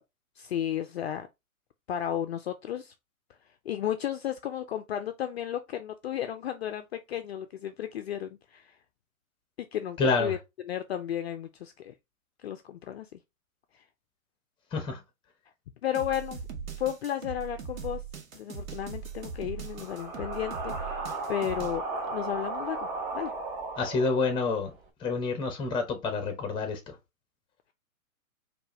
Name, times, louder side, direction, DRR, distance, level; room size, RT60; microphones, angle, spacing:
voice 1, 0.4-1.3 1.9-2.9 3.7-8.8 9.7-10.4 10.6-11.9 12.4-13.2 13.7-13.8 15.8-16.4 16.8-18.0 18.3-21.0 21.3-22.9 23.1-23.3, left 10 dB, 50° left, 0.5 m, -33 dB
voice 2, 10.0-10.3 14.7-15.0 23.8-24.7 25.0-26.8, left 4 dB, 10° left, 0.8 m, -28 dB
sound 1, 15.9-21.8, right 6 dB, 65° right, 1.4 m, -40 dB
sound 2, 18.7-24.8, right 3 dB, 30° right, 1.3 m, -36 dB
4.5 x 2.6 x 3.1 m
hypercardioid pair, 125°, 43 cm